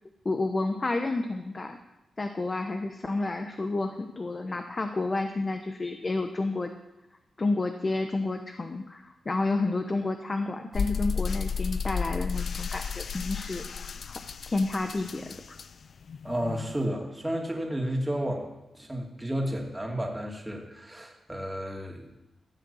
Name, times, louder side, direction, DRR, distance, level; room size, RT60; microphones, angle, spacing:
voice 1, 0.2-1.8 2.2-6.7 7.4-13.6 14.1-14.2 14.5-15.6, left 2 dB, 30° left, 6 dB, 1.0 m, -30 dB
sound 1, 10.7-16.9, left 6 dB, 65° left, 0.5 m, -33 dB
voice 2, 16.2-22.1, equal, 10° right, 0 dB, 2.7 m, -32 dB
14.5 x 8.7 x 7.2 m, 0.96 s
wide cardioid pair, 95°, 0 cm